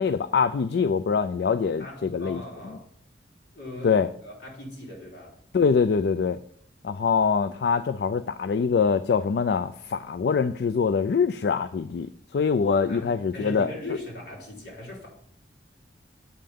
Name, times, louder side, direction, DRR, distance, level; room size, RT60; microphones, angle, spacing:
voice 1, 0.0-2.4 3.8-4.1 5.5-6.4 6.8-12.1 12.3-13.7, left 5 dB, 65° left, 12 dB, 0.3 m, -24 dB
voice 2, 1.8-2.8 3.5-5.4 12.9-15.1, left 1 dB, 80° left, -2 dB, 3.2 m, -39 dB
8.5 x 5.6 x 5.2 m, 0.64 s
head